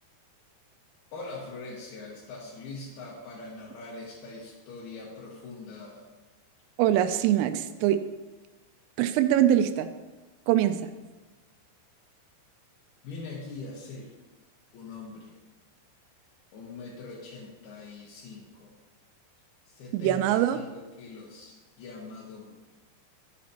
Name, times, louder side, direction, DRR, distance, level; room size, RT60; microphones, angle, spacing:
voice 1, 1.1-6.0 13.0-14.2 14.7-15.3 16.5-18.7 19.7-22.5, left 3 dB, 65° left, -6 dB, 2.9 m, -42 dB
voice 2, 6.8-8.0 9.0-9.9 10.5-10.9 19.9-20.6, right 11 dB, 85° right, 9 dB, 3.2 m, -23 dB
13.5 x 8.4 x 2.9 m, 1.2 s
omnidirectional pair, 5.7 m